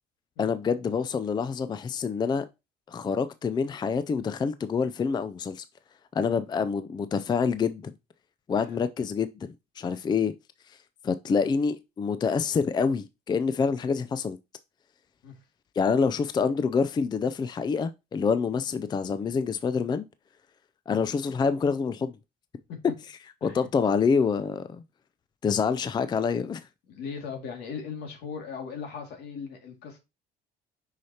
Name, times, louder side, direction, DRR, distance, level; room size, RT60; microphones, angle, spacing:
voice 1, 0.4-2.5 2.9-5.6 6.1-7.9 8.5-10.3 10.7-10.8 11.0-14.4 15.8-20.1 20.9-22.1 23.4-24.8 25.4-26.6, left 5 dB, 25° left, 0.4 m, -27 dB
voice 2, 8.5-8.8 15.2-15.4 22.7-22.8 23.4-23.6 26.9-30.0, left 6 dB, 75° left, 2.2 m, -38 dB
6.2 x 5.7 x 2.8 m
cardioid pair, 110°, 17 cm